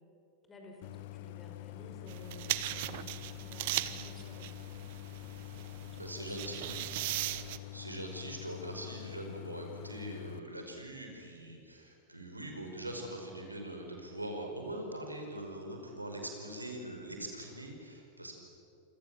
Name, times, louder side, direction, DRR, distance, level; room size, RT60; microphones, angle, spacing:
voice 1, 0.4-4.8 5.9-6.9, equal, 20° left, 2 dB, 5.9 m, -54 dB
Idling, 0.8-10.4, left 20 dB, 50° left, 0.7 m, -46 dB
sound 1, 2.1-7.6, right 16 dB, 50° right, 1.0 m, -38 dB
voice 2, 6.0-7.0 7.3-18.3, right 1 dB, 85° right, 3 dB, 5.2 m, -42 dB
27.5 x 25.5 x 7.6 m, 2.8 s
figure-of-eight pair, 90°, 0 cm